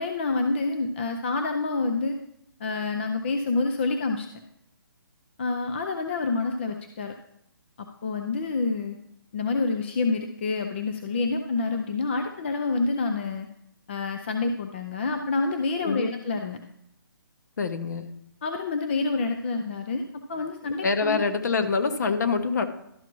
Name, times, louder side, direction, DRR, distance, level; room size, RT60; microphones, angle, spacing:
voice 1, 0.0-2.2 2.6-4.3 5.4-7.1 7.8-9.0 9.3-13.5 13.9-16.6 18.4-20.0 20.3-21.2, left 3 dB, 30° left, 5 dB, 0.4 m, -27 dB
voice 2, 15.8-16.1 17.6-18.1 20.8-22.7, left 4 dB, 50° left, 8 dB, 1.0 m, -25 dB
12.0 x 5.8 x 3.0 m, 0.77 s
hypercardioid pair, 165°, 12 cm